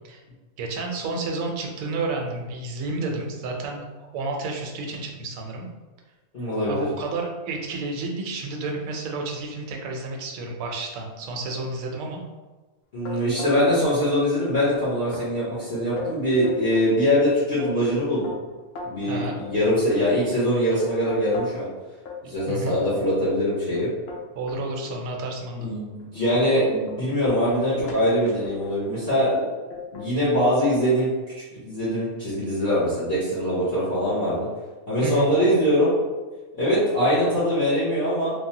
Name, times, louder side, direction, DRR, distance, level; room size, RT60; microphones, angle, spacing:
voice 1, 0.6-3.8 4.1-5.7 6.7-12.2 19.1-19.4 22.5-22.7 24.3-25.7 35.0-35.3, right 2 dB, 75° right, 1 dB, 1.0 m, -30 dB
voice 2, 6.3-6.8 12.9-18.3 18.8-21.7 22.2-23.9 25.6-29.5 29.9-31.1 31.5-34.5 34.9-35.9 36.6-38.3, equal, 40° left, -10 dB, 0.9 m, -22 dB
sound 1, 13.0-14.0 14.2-14.8 15.1-15.3 15.7-16.9 17.3-21.7 22.1-24.6 25.2-25.4 25.8-28.9 29.7-30.1 30.3-31.1, left 4 dB, 70° left, 0.9 m, -38 dB
3.1 x 2.1 x 2.8 m, 1.3 s
omnidirectional pair, 1.5 m